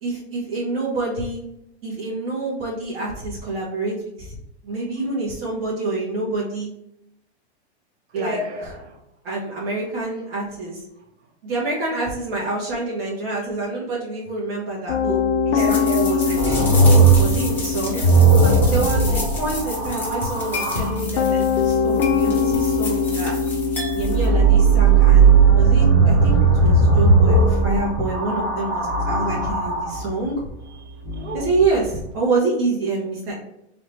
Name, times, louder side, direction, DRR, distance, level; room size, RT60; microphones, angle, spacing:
voice 1, 0.0-1.4 1.8-4.4 4.6-6.7 8.1-8.4 9.2-10.8 11.4-15.2 15.5-16.8 17.2-23.4 23.9-30.5 31.3-33.3, right 2 dB, 60° right, -4 dB, 1.4 m, -27 dB
voice 2, 8.1-9.0 15.4-16.7 17.9-18.2 30.9-31.4, equal, 90° right, 1 dB, 1.4 m, -32 dB
Piano, 14.9-32.0, left 5 dB, 70° left, 0.6 m, -25 dB
sound 1, 15.6-24.3, left 3 dB, 5° left, 0.7 m, -33 dB
sound 2, 16.4-21.0 24.0-30.1 31.0-31.7, right 4 dB, 40° right, 1.5 m, -17 dB
3.6 x 2.8 x 4.3 m, 0.81 s
supercardioid pair, 155°, 33 cm